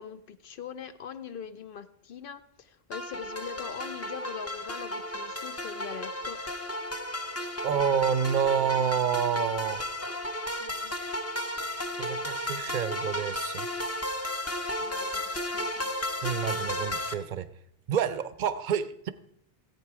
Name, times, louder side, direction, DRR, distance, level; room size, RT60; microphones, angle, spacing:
voice 1, 0.0-6.4 7.0-7.5 10.6-11.0 11.6-11.7 14.8-15.9, left 8 dB, 65° left, 0.7 m, -42 dB
sound 1, 2.9-17.1, left 1 dB, 15° left, 0.6 m, -34 dB
voice 2, 7.6-9.9 12.0-13.7 16.2-17.5 17.9-19.1, right 7 dB, 55° right, 0.7 m, -28 dB
15.0 x 8.3 x 4.7 m
omnidirectional pair, 1.0 m